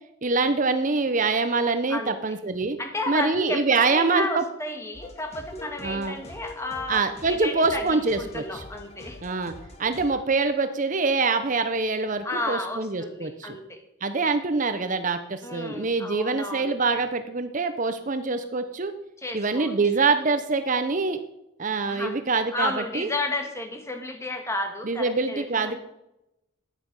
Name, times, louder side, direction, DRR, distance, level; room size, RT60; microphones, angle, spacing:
voice 1, 0.2-2.8 3.1-4.4 5.8-6.2 6.9-8.6 9.2-9.5 9.8-13.6 14.0-18.9 19.3-21.2 21.6-23.1 24.8-25.8, right 4 dB, 40° right, 9 dB, 0.8 m, -25 dB
voice 2, 2.8-9.2 12.2-13.8 15.4-16.7 19.2-19.8 21.9-22.2 22.5-25.8, left 2 dB, 15° left, 5 dB, 1.8 m, -32 dB
sound 1, 4.9-10.1, left 2 dB, 35° left, 2.1 m, -44 dB
14.0 x 10.5 x 5.4 m, 0.87 s
head